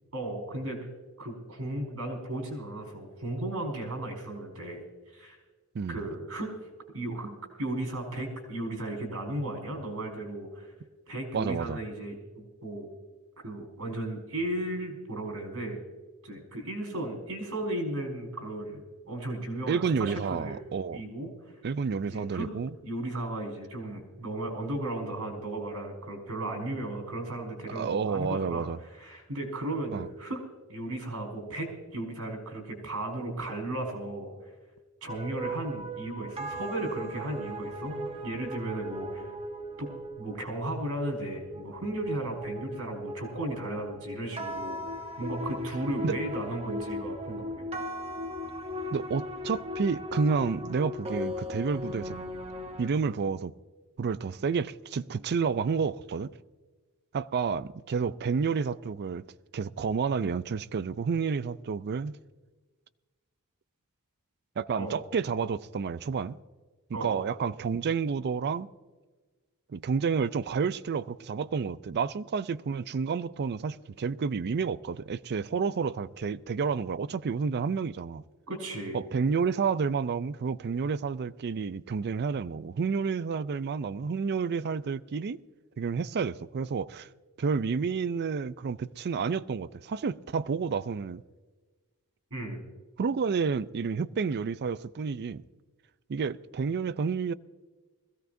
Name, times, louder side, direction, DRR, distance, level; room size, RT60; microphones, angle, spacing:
voice 1, 0.1-0.8 1.2-4.8 5.1-5.4 5.9-6.5 6.9-7.3 7.6-10.7 11.1-12.9 13.4-15.8 16.2-20.6 20.9-21.5 22.1-22.5 22.8-30.4 30.7-34.5 35.0-39.3 39.8-39.9 40.2-44.8 45.2-47.7 64.8-65.0 66.9-67.2 78.5-79.0 92.3-92.6, right 1 dB, 75° right, 4.8 m, -35 dB
voice 2, 11.3-11.8 19.7-21.0 21.6-22.7 27.8-28.8 29.9-30.1 46.0-46.2 48.9-52.2 52.8-53.5 54.0-56.3 57.1-59.2 59.5-62.2 64.6-66.4 67.0-68.7 69.7-78.2 78.9-85.4 85.8-87.1 87.4-91.2 93.0-95.4 96.1-97.3, right 5 dB, 50° right, 0.4 m, -30 dB
sound 1, 35.1-52.9, left 1 dB, 30° right, 1.0 m, -38 dB
21.5 x 16.5 x 2.6 m
head